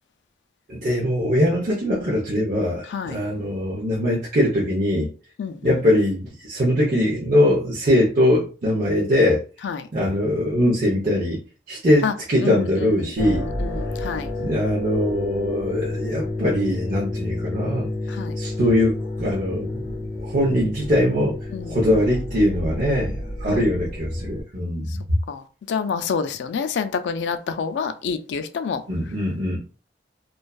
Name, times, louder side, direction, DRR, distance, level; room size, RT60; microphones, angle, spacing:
voice 1, 0.7-5.1 5.6-9.4 9.9-11.4 11.7-13.5 14.4-17.9 18.4-19.8 20.2-21.4 21.7-25.2 28.9-29.6, left 1 dB, 50° right, 0.7 m, -21 dB
voice 2, 2.9-3.2 5.4-5.8 9.6-9.9 12.0-12.1 12.4-14.3 18.1-18.4 21.5-21.8 23.5-23.6 24.9-25.0 25.3-28.8, left 6 dB, 90° left, 0.3 m, -28 dB
sound 1, 13.2-24.4, left 2 dB, 70° left, 0.7 m, -30 dB
2.6 x 2.3 x 2.3 m
head